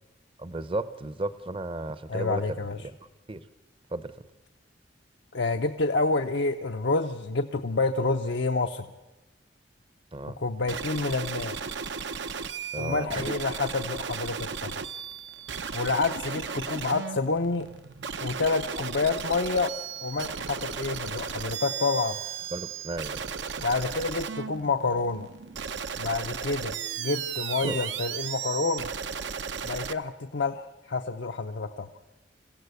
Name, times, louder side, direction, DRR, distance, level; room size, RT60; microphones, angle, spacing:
voice 1, 0.4-3.0 3.3-3.5 3.9-4.2 10.1-10.4 12.7-13.4 15.7-15.8 22.5-23.2 27.6-27.8, right 2 dB, 30° right, 14 dB, 0.7 m, -34 dB
voice 2, 2.1-2.8 5.3-8.9 10.4-11.6 12.8-14.7 15.7-17.7 18.2-19.7 20.0-22.2 23.6-25.3 26.0-28.9 29.6-31.9, left 3 dB, 65° left, 6 dB, 0.7 m, -28 dB
sound 1, 10.7-29.9, right 6 dB, 70° right, 0.8 m, -35 dB
26.0 x 16.0 x 8.2 m, 1.1 s
head